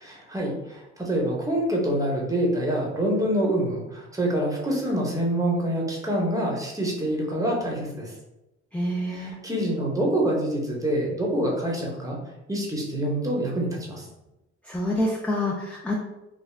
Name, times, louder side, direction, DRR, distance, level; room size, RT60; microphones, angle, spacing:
voice 1, 0.0-8.1 9.1-12.2 12.5-14.1, right 1 dB, 10° right, -2 dB, 0.8 m, -26 dB
voice 2, 8.7-9.3 14.7-15.9, left 1 dB, 5° left, -2 dB, 0.3 m, -27 dB
2.3 x 2.3 x 3.2 m, 0.96 s
cardioid pair, 90°, 30 cm